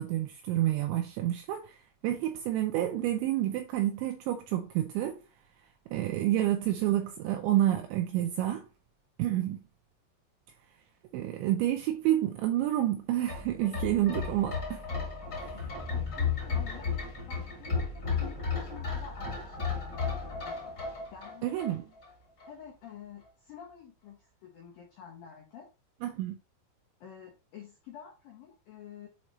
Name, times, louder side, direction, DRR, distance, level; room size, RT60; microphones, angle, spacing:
voice 1, 0.0-1.8 2.0-5.2 5.9-8.7 9.2-9.6 11.1-14.8 21.4-21.9 26.0-26.4, right 13 dB, 85° right, 2.6 m, -29 dB
sound 1, 13.2-22.1 22.4-22.5, left 5 dB, 35° left, 1.7 m, -34 dB
sound 2, 15.4-23.3 23.7-23.8, right 2 dB, 20° right, 1.4 m, -51 dB
voice 2, 15.9-20.5 21.1-21.7 22.5-25.7 27.0-29.1, left 8 dB, 80° left, 2.0 m, -49 dB
7.3 x 4.5 x 3.1 m
omnidirectional pair, 5.9 m